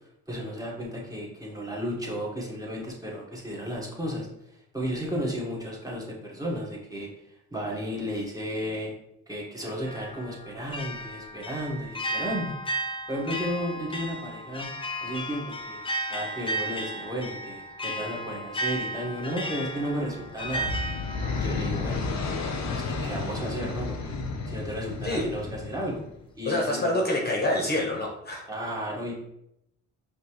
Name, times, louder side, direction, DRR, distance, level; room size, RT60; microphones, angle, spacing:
voice 1, 0.3-7.1 7.5-8.9 9.3-14.7 15.0-20.7 21.4-22.4 22.7-24.2 24.4-26.0 26.3-27.1 28.5-29.2, equal, 10° right, -4 dB, 1.4 m, -33 dB
sound 1, 9.9-22.8, right 1 dB, 15° left, 0.6 m, -35 dB
sound 2, 20.2-26.2, left 4 dB, 65° left, 0.8 m, -32 dB
voice 2, 26.4-28.5, left 1 dB, 30° left, 0 dB, 1.1 m, -26 dB
5.2 x 2.9 x 3.1 m, 0.79 s
cardioid pair, 90°, 30 cm